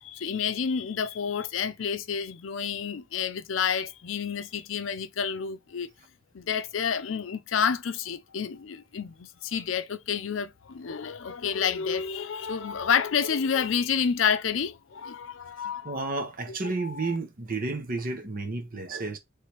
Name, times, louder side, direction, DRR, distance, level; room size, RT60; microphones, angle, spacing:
voice 1, 0.0-5.9 6.3-16.0 16.6-17.2, left 7 dB, 80° left, 0.5 m, -29 dB
voice 2, 15.8-19.2, right 3 dB, 45° right, 0.9 m, -31 dB
3.3 x 3.2 x 4.5 m
head